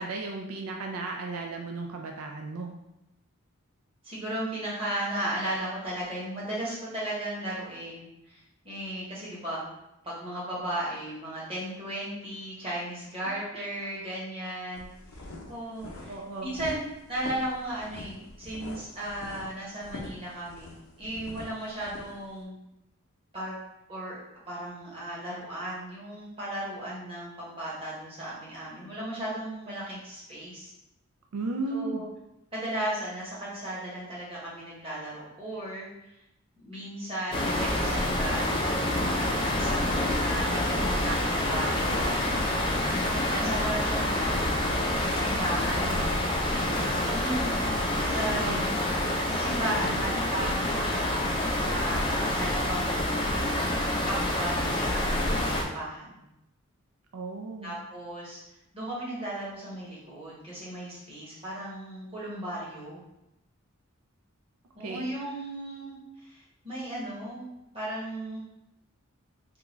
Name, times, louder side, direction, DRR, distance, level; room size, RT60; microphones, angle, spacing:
voice 1, 0.0-2.7 14.4-14.5 16.1-16.5 31.3-32.1 45.8-46.1 48.0-48.7 49.9-50.0 57.1-57.8 64.8-65.1, right 3 dB, 80° right, 2 dB, 0.4 m, -35 dB
voice 2, 4.0-9.7 10.0-16.2 16.4-16.8 17.1-22.6 23.3-23.5 23.9-24.2 24.5-30.7 31.7-32.1 32.5-35.9 36.6-42.4 43.3-44.6 45.1-46.1 47.1-47.5 48.0-48.7 49.2-51.2 51.7-53.2 53.6-56.3 57.6-58.4 58.7-63.0 64.7-68.4, right 1 dB, 25° right, -7 dB, 1.1 m, -36 dB
sound 1, 14.7-22.4, left 2 dB, 75° left, 0.6 m, -44 dB
sound 2, 37.3-55.6, left 1 dB, 20° left, 0.4 m, -27 dB
3.6 x 2.3 x 3.0 m, 0.87 s
head